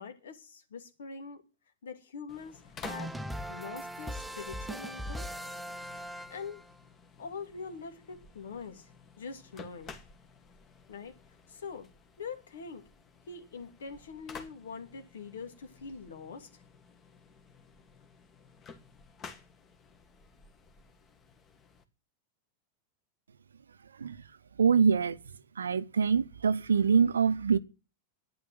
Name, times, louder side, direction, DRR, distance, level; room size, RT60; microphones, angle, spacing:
voice 1, 0.0-1.4 1.8-3.1 3.5-5.3 6.3-6.6 7.2-8.9 9.2-9.9 10.9-11.2 11.5-11.9 12.2-12.8 13.3-16.5, left 5 dB, 65° left, 2.8 m, -43 dB
sound 1, 2.3-21.8, left 5 dB, 25° left, 2.1 m, -53 dB
sound 2, 2.8-6.7, equal, 5° right, 0.9 m, -39 dB
voice 2, 24.6-25.2 25.6-27.6, right 6 dB, 70° right, 0.7 m, -24 dB
12.0 x 10.5 x 7.8 m
figure-of-eight pair, 90°, 0 cm